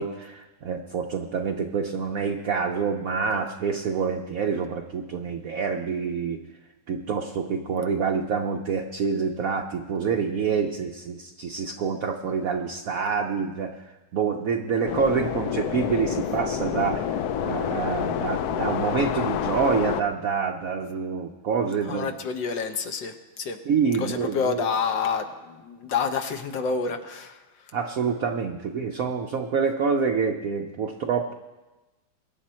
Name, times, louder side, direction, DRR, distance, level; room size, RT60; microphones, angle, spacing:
voice 1, 0.0-6.4 6.9-13.7 14.1-22.1 23.7-24.7 27.7-31.3, right 6 dB, 60° right, 3 dB, 0.9 m, -27 dB
sound 1, 14.9-20.0, left 9 dB, 90° left, 0.8 m, -28 dB
voice 2, 21.9-23.6 24.0-27.4, left 5 dB, 65° left, 6 dB, 1.5 m, -28 dB
23.0 x 9.4 x 4.4 m, 1.1 s
omnidirectional pair, 2.4 m